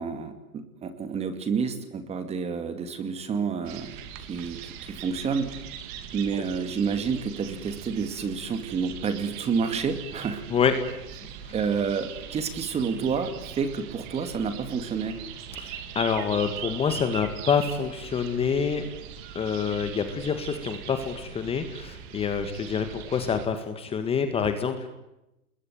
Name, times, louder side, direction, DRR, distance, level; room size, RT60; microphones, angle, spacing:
voice 1, 0.0-3.9 4.3-5.5 6.1-10.4 11.5-15.2, right 5 dB, 15° right, 10 dB, 2.3 m, -29 dB
sound 1, 3.6-23.4, right 8 dB, 35° right, 3.0 m, -41 dB
voice 2, 15.6-18.8 19.4-24.9, left 6 dB, 15° left, 8 dB, 1.9 m, -27 dB
27.5 x 21.5 x 9.4 m, 0.91 s
hypercardioid pair, 145°, 43 cm